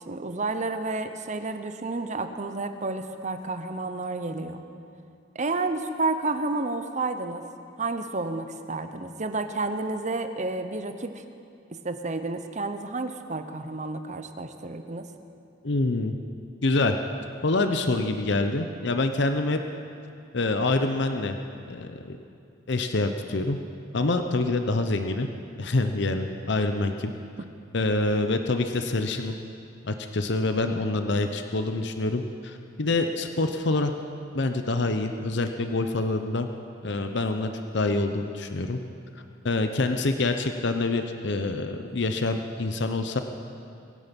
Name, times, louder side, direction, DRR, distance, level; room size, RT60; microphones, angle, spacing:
voice 1, 0.1-4.6 5.3-7.4 7.8-11.2 11.8-15.1, right 3 dB, 40° right, 8 dB, 0.9 m, -30 dB
voice 2, 15.6-16.2 16.6-17.0 17.4-19.6 20.3-21.4 21.7-22.2 22.7-23.6 23.9-25.3 25.6-27.1 27.7-29.3 29.8-33.9 34.3-36.5 36.8-38.8 39.4-43.2, left 2 dB, 65° left, 7 dB, 0.8 m, -26 dB
23.5 x 10.0 x 5.4 m, 2.5 s
head